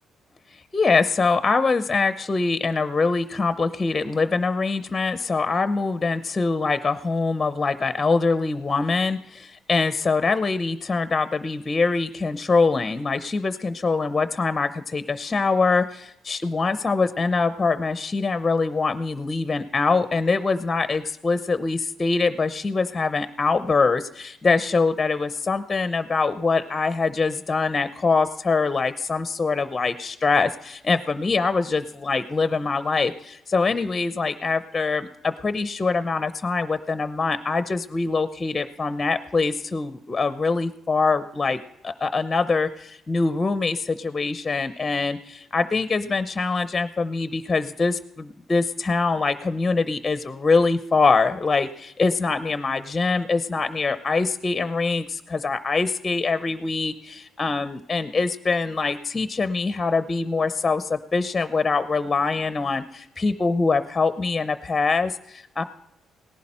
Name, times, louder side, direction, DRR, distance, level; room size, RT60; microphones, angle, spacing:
voice 1, 0.5-65.6, left 4 dB, 25° left, 11 dB, 0.7 m, -24 dB
18.0 x 11.0 x 4.3 m, 0.82 s
cardioid pair, 90°, 0 cm